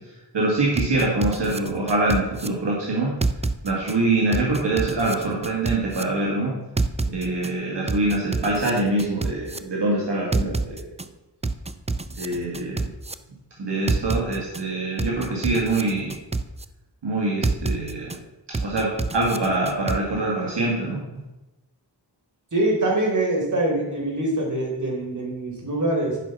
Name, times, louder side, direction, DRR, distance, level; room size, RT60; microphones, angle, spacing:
voice 1, 0.3-3.1 3.6-6.5 7.0-10.9 12.2-12.9 13.6-16.1 17.0-18.1 18.6-21.0, right 2 dB, 70° right, -4 dB, 2.3 m, -24 dB
sound 1, 0.8-2.5 3.2-3.9 4.3-6.0 6.8-7.5 7.9-9.6 10.3-11.1 11.4-13.1 13.9-14.6 15.0-16.6 17.4-18.2 18.5-20.0, right 3 dB, 15° right, 0.5 m, -27 dB
voice 2, 22.5-26.2, right 1 dB, 45° right, -1 dB, 3.6 m, -24 dB
11.0 x 5.7 x 5.8 m, 1.0 s
cardioid pair, 65°, 43 cm